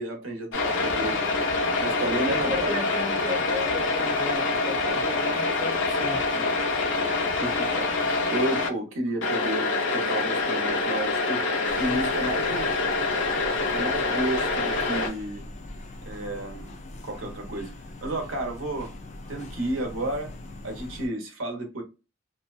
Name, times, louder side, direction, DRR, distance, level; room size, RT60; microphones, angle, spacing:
voice 1, 0.0-1.4 1.8-2.7 7.4-11.4 11.8-12.7 13.7-15.5 16.1-16.8 17.0-17.7 18.0-18.9 19.3-20.3 20.6-21.8, right 1 dB, 85° right, 0.8 m, -31 dB
sound 1, 0.5-8.7 9.2-15.1, left 3 dB, 70° left, 0.7 m, -26 dB
voice 2, 2.3-6.5, left 2 dB, 20° right, 0.7 m, -35 dB
sound 2, 11.7-21.1, left 1 dB, 35° left, 0.4 m, -42 dB
2.6 x 2.2 x 2.3 m
head